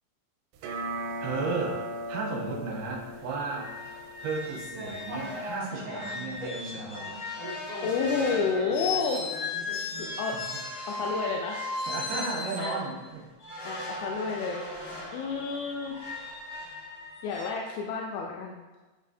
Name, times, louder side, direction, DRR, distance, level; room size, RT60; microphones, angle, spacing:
sound 1, 0.6-5.6, right 1 dB, 90° right, 2.9 m, -38 dB
voice 1, 1.2-1.8 2.1-3.7 4.2-7.2 10.3-10.4 11.9-13.3, right 3 dB, 65° right, -2 dB, 3.0 m, -34 dB
sound 2, 2.8-2.9 3.2-3.3 3.6-12.8 13.4-17.5, left 3 dB, 50° left, 1.7 m, -37 dB
sound 3, 4.6-10.1, equal, 50° right, 2.0 m, -40 dB
voice 2, 7.8-9.3 10.0-10.4 10.9-11.7 12.6-12.8 13.6-14.6 15.1-15.9 17.2-18.6, left 5 dB, 85° left, 0 dB, 2.9 m, -30 dB
11.0 x 4.1 x 2.7 m, 1.2 s
omnidirectional pair, 5.2 m